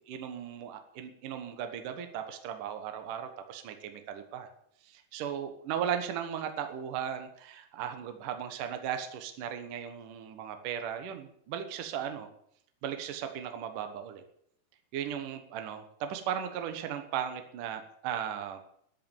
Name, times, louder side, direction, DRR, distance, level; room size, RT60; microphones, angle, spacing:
voice 1, 0.1-4.5 4.8-12.3 12.8-14.2 14.9-18.6, right 9 dB, 65° right, 7 dB, 2.6 m, -37 dB
11.0 x 10.5 x 8.9 m, 0.69 s
omnidirectional pair, 4.5 m